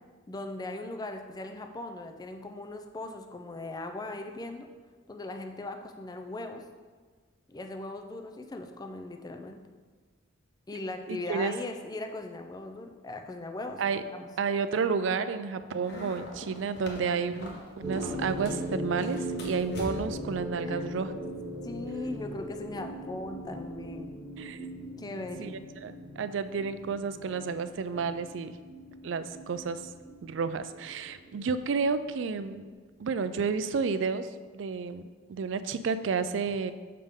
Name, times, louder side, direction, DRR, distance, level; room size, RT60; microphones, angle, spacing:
voice 1, 0.3-4.7 5.1-6.6 7.5-9.6 10.7-14.3 20.6-20.9 21.6-24.2 25.0-25.6, left 2 dB, 20° left, 5 dB, 0.4 m, -39 dB
voice 2, 11.1-11.5 13.8-14.0 14.4-21.2 24.4-24.7 25.4-25.5 25.8-28.5 29.0-29.8 30.2-32.7 33.0-34.3 34.5-36.7, right 5 dB, 70° right, 12 dB, 0.4 m, -31 dB
sound 1, 15.8-18.7 19.0-20.3, equal, 60° left, 1.2 m, -43 dB
sound 2, 17.8-32.7, equal, 10° right, 0.7 m, -40 dB
6.6 x 5.2 x 3.6 m, 1.4 s
head